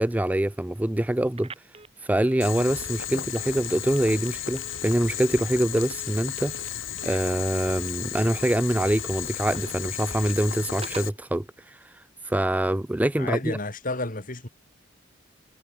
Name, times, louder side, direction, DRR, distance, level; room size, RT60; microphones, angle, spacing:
voice 1, 0.0-1.5 2.0-6.5 7.0-13.6, right 1 dB, 10° right, 0.4 m, -25 dB
Telephone, 1.4-11.2, right 3 dB, 30° right, 3.0 m, -47 dB
Boiling, 2.4-11.1, left 10 dB, 80° left, 2.9 m, -34 dB
voice 2, 13.2-14.5, left 2 dB, 45° left, 2.8 m, -31 dB
head